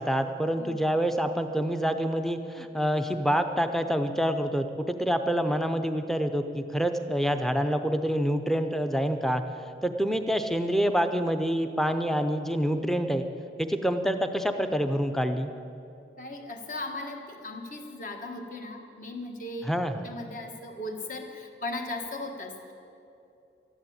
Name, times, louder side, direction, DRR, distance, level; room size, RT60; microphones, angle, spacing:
voice 1, 0.0-9.4 9.8-13.2 13.6-15.5 19.6-20.1, equal, ahead, 7 dB, 0.6 m, -27 dB
voice 2, 16.2-19.7 20.0-22.7, left 2 dB, 45° left, 3 dB, 1.5 m, -37 dB
13.5 x 11.0 x 8.7 m, 2.7 s
head